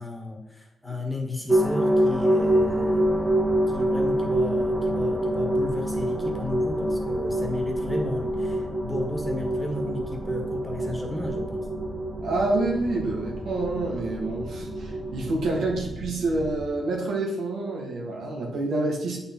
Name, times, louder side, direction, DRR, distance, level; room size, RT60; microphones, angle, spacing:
voice 1, 0.0-3.1 3.7-11.6, left 2 dB, 10° left, 1 dB, 1.7 m, -34 dB
sound 1, 1.5-15.3, right 1 dB, 15° right, 1.2 m, -26 dB
sound 2, 2.4-16.7, right 1 dB, 50° right, 2.1 m, -40 dB
voice 2, 12.2-19.2, right 2 dB, 85° right, -1 dB, 1.7 m, -28 dB
8.3 x 4.3 x 4.5 m, 0.96 s
cardioid pair, 85°, 0 cm